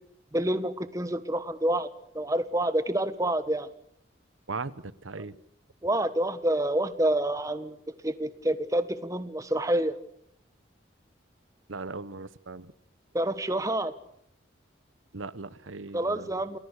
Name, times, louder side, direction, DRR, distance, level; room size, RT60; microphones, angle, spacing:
voice 1, 0.3-1.9 2.1-3.7 5.8-7.7 8.0-10.0 13.1-13.9 15.9-16.6, right 1 dB, 15° right, 11 dB, 1.4 m, -27 dB
voice 2, 5.0-5.4 11.7-12.7 15.1-16.6, right 3 dB, 85° right, 15 dB, 1.1 m, -38 dB
28.5 x 19.5 x 8.3 m, 0.72 s
head